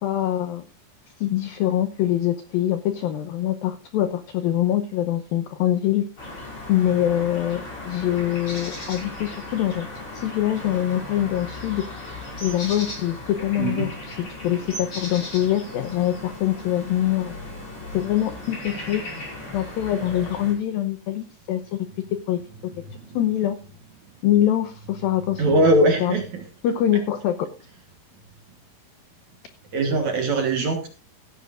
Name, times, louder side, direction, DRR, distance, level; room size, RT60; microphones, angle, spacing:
voice 1, 0.0-0.6 1.2-6.1 6.7-9.9 10.1-11.8 12.4-14.2 14.4-17.4 17.9-19.0 19.5-21.9 22.3-22.4 23.1-23.6 24.2-25.6 26.0-26.2 26.6-27.5, left 12 dB, 85° left, 9 dB, 2.0 m, -24 dB
sound 1, 6.2-20.5, left 2 dB, 25° left, 5.7 m, -37 dB
voice 2, 13.6-13.9 22.9-23.2 25.4-26.3 29.7-30.9, right 1 dB, 60° right, 4 dB, 2.1 m, -21 dB
16.0 x 14.5 x 2.5 m, 0.31 s
omnidirectional pair, 5.2 m